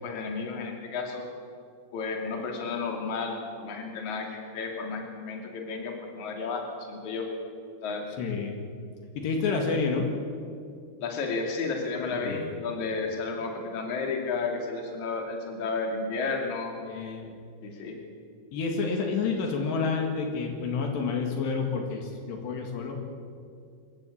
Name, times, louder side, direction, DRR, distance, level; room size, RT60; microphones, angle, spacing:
voice 1, 0.0-1.3 1.9-7.3 7.8-8.1 11.0-16.8 17.6-18.0, left 4 dB, 45° left, 2 dB, 3.6 m, -32 dB
voice 2, 8.2-8.7 9.2-10.1 12.2-12.4 16.8-17.4 18.5-23.0, left 4 dB, 75° left, 2 dB, 4.1 m, -29 dB
25.0 x 15.5 x 8.6 m, 2.4 s
omnidirectional pair, 5.1 m